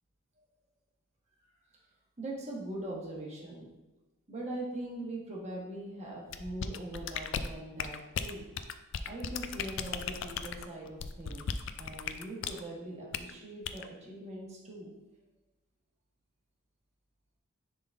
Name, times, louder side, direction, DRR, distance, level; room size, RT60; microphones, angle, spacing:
voice 1, 2.2-3.7 4.3-8.4 9.1-11.5 11.8-14.9, right 1 dB, 30° right, -3 dB, 1.3 m, -41 dB
sound 1, 6.3-12.6 13.1-13.3 13.6-13.9, left 7 dB, 60° left, 0.3 m, -37 dB
10.0 x 3.8 x 2.6 m, 1.0 s
head